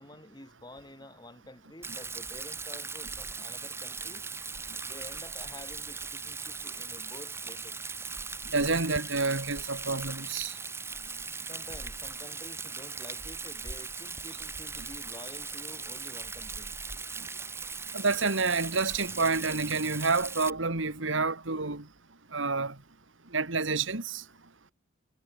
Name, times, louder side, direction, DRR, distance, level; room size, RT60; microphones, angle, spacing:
voice 1, 0.0-4.2 4.8-7.8 11.5-16.7, left 1 dB, 20° left, 5.3 m, -49 dB
Rain, 1.8-20.5, right 4 dB, 15° right, 1.2 m, -39 dB
voice 2, 8.5-10.6 17.2-17.3 17.9-21.9 22.3-22.8 23.3-24.2, right 4 dB, 75° right, 2.3 m, -29 dB
head